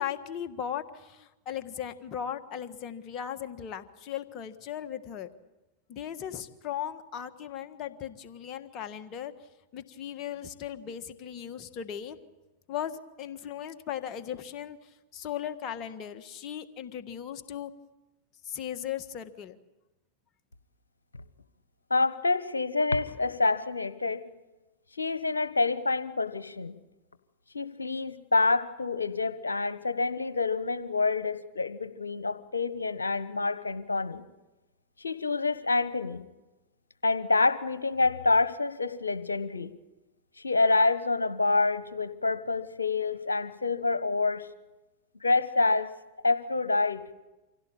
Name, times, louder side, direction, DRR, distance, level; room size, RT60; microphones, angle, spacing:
voice 1, 0.0-5.3 5.9-9.3 9.7-12.2 12.7-14.8 15.1-17.7 18.4-19.6, left 9 dB, 40° left, 9 dB, 1.6 m, -37 dB
voice 2, 21.9-24.2 25.0-26.8 27.5-34.2 35.0-36.2 37.0-39.7 40.4-44.5 45.2-45.9 46.2-47.0, left 3 dB, 85° left, 12 dB, 1.2 m, -27 dB
25.5 x 16.5 x 8.7 m, 1.1 s
hypercardioid pair, 95°, 0 cm